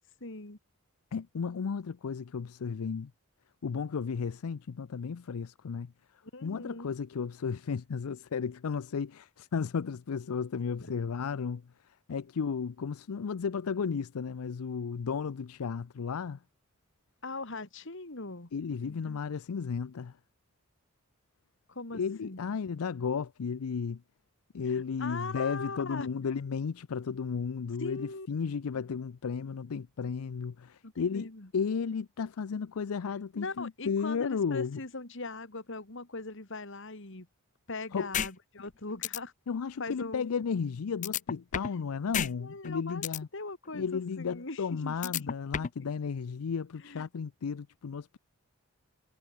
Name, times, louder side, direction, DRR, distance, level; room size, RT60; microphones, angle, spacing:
voice 1, 0.2-0.6 6.3-6.9 10.8-10.9 17.2-18.5 18.8-19.2 21.7-22.4 24.7-26.1 27.8-28.3 30.8-31.5 33.3-37.3 37.7-39.3 39.8-40.2 42.4-43.0 43.3-45.7 46.8-47.0, left 3 dB, 60° left, 2.4 m, -41 dB
voice 2, 1.1-3.1 3.6-5.9 6.4-16.4 18.5-20.2 21.9-24.0 24.5-31.3 31.5-34.8 37.9-38.1 39.5-43.3 43.7-48.2, left 6 dB, 80° left, 0.5 m, -34 dB
sound 1, 38.1-38.3 38.7-38.8 39.0-39.2 41.0-41.8 42.1-42.3 42.6-43.2 45.0-45.8, left 8 dB, 35° left, 0.5 m, -31 dB
head